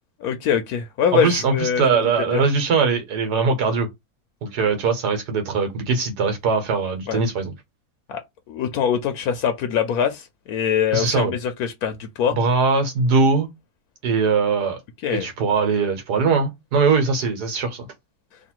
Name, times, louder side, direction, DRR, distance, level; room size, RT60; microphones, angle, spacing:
voice 1, 0.2-1.8 2.3-2.4 7.1-7.2 8.1-8.2 8.5-12.4 15.0-15.3, left 8 dB, 75° left, 1.1 m, -23 dB
voice 2, 1.2-3.9 4.4-7.5 10.9-11.4 12.3-13.5 14.0-14.8 15.1-17.9, right 4 dB, 85° right, 1.7 m, -21 dB
3.2 x 2.5 x 4.4 m
omnidirectional pair, 1.7 m